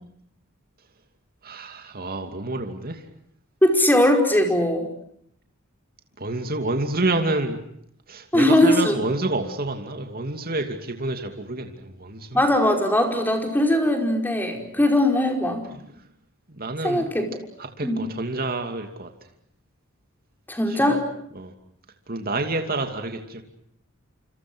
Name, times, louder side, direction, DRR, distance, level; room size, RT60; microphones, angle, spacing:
voice 1, 1.4-3.1 6.2-7.6 8.1-12.4 14.6-14.7 15.6-16.0 16.5-17.1 17.6-19.1 20.7-21.0 21.3-21.5 22.1-23.4, right 2 dB, 45° right, 5 dB, 2.7 m, -28 dB
voice 2, 3.6-4.9 8.3-9.0 12.3-15.7 16.8-17.3 17.8-18.0 20.5-21.0, left 1 dB, 10° left, 4 dB, 5.2 m, -20 dB
28.5 x 27.0 x 6.4 m, 0.69 s
head